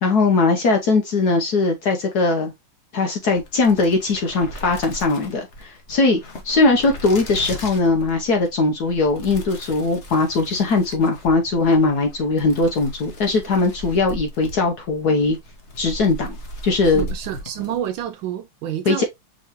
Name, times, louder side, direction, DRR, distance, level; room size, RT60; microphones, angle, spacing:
voice 1, 0.0-2.5 2.9-6.2 6.4-15.4 15.8-16.4 16.6-17.0 18.9-19.0, left 3 dB, 60° left, 1.1 m, -20 dB
sound 1, 3.2-18.1, equal, 40° left, 1.1 m, -37 dB
voice 2, 16.8-19.0, right 10 dB, 75° right, 1.2 m, -28 dB
5.5 x 3.1 x 2.9 m
omnidirectional pair, 2.4 m